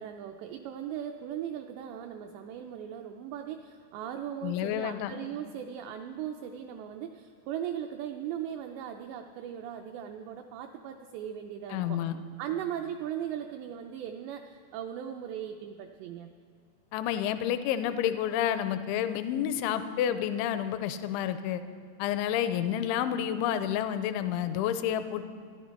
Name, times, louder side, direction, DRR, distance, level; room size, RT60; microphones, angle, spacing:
voice 1, 0.0-12.0 12.4-16.3, right 9 dB, 85° right, 5 dB, 2.4 m, -38 dB
voice 2, 4.4-5.1 11.7-12.2 16.9-21.6 22.0-25.3, left 10 dB, 85° left, 11 dB, 2.8 m, -29 dB
25.5 x 11.0 x 4.5 m, 2.2 s
omnidirectional pair, 5.6 m